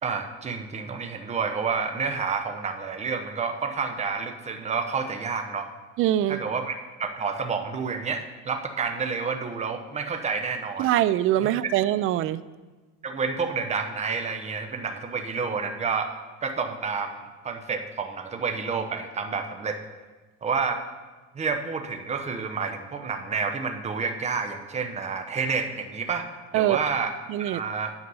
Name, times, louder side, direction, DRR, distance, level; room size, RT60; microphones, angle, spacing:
voice 1, 0.0-5.7 6.3-10.9 11.4-11.5 13.0-16.1 16.4-19.8 20.4-20.8 21.3-26.3 26.5-27.1 27.4-27.9, right 5 dB, 20° right, 5 dB, 0.9 m, -29 dB
voice 2, 6.0-6.4 10.8-12.4 26.5-26.8 27.3-27.6, right 13 dB, 45° right, 16 dB, 0.4 m, -23 dB
9.6 x 7.9 x 5.5 m, 1.3 s
cardioid pair, 135°, 30 cm